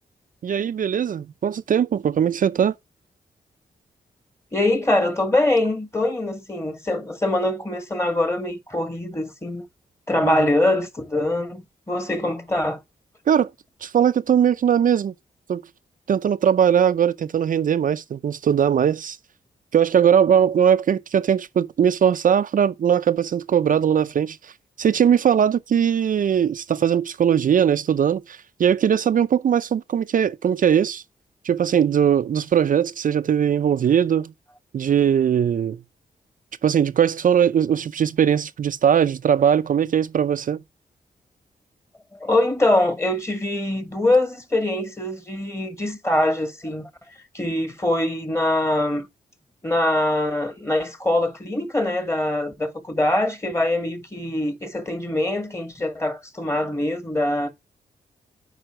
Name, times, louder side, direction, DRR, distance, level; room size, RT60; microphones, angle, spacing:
voice 1, 0.4-2.7 10.2-10.4 13.3-13.5 13.8-15.1 15.5-15.6 16.1-19.2 19.7-24.4 24.8-31.0 31.4-34.3 34.7-35.8 36.6-40.6, right 8 dB, 60° right, 0.5 m, -20 dB
voice 2, 4.5-9.6 10.1-12.8 42.1-46.9 47.3-49.1 49.6-57.5, left 1 dB, 15° left, 2.1 m, -23 dB
7.8 x 5.0 x 4.9 m
cardioid pair, 75°, 16 cm